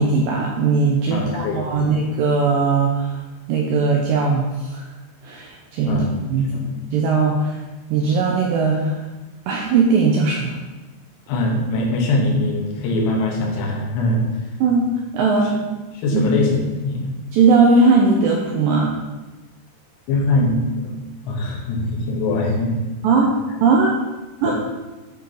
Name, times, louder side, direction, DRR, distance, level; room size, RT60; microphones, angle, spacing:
voice 1, 0.0-3.2 3.5-4.8 5.2-6.1 6.3-7.6 7.9-9.0 9.5-10.6 14.6-14.9 15.1-15.5 16.1-16.3 17.3-18.9 23.0-23.4 23.6-24.0 24.4-24.5, right 4 dB, 90° right, -1 dB, 2.0 m, -18 dB
voice 2, 1.1-2.0 5.9-6.1 6.5-6.6 11.3-14.3 16.0-17.1 20.1-21.0 21.3-22.8 24.5-24.6, left 2 dB, 85° left, -2 dB, 3.4 m, -22 dB
9.5 x 4.7 x 3.9 m, 1.2 s
omnidirectional pair, 4.9 m